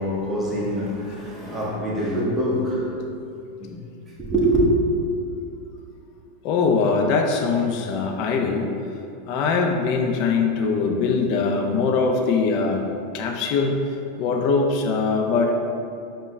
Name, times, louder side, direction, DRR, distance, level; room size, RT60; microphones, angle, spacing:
voice 1, 0.0-2.9 3.6-3.8 4.2-4.6, right 1 dB, 10° right, -7 dB, 1.1 m, -24 dB
voice 2, 6.4-8.7 9.3-12.8 13.1-15.5, left 4 dB, 55° left, 3 dB, 0.5 m, -22 dB
5.4 x 2.3 x 3.2 m, 2.5 s
hypercardioid pair, 110°, 0 cm